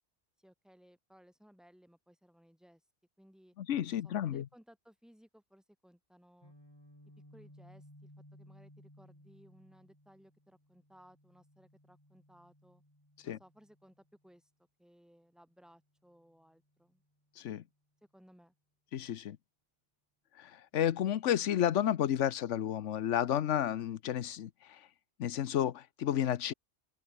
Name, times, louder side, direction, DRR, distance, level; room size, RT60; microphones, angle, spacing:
voice 1, 0.4-2.8 3.2-3.5 3.9-6.5 7.3-12.8 13.2-14.5 14.8-17.0 18.1-18.5, equal, ahead, 6.1 m, -62 dB
voice 2, 3.6-4.4 13.2-13.4 17.4-17.6 18.9-19.4 20.4-24.5 25.2-26.5, left 10 dB, 90° left, 1.1 m, -31 dB
Guitar, 6.4-14.3, equal, 20° left, 7.6 m, -60 dB
omnidirectional pair, 1.2 m